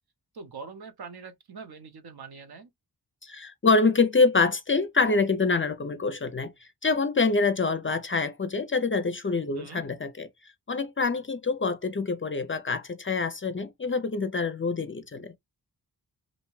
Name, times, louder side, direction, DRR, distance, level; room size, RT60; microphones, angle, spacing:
voice 1, 0.3-2.7 9.5-9.8, right 5 dB, 65° right, 0.7 m, -43 dB
voice 2, 3.2-6.5 6.8-10.3 10.7-15.3, left 4 dB, 30° left, 0.4 m, -25 dB
2.7 x 2.1 x 3.0 m
wide cardioid pair, 55°, 41 cm